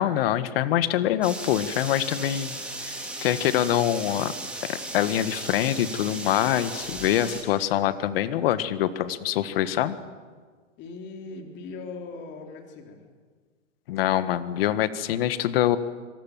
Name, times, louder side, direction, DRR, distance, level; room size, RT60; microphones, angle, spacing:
voice 1, 0.0-2.6 2.8-2.9 3.2-4.3 4.7-10.0 13.9-15.8, left 12 dB, 45° left, 13 dB, 1.6 m, -24 dB
sound 1, 1.2-7.4, right 2 dB, 5° right, 3.5 m, -36 dB
voice 2, 10.8-13.0, left 3 dB, 25° left, 3 dB, 3.7 m, -39 dB
25.0 x 24.0 x 7.5 m, 1.5 s
hypercardioid pair, 145°, 39 cm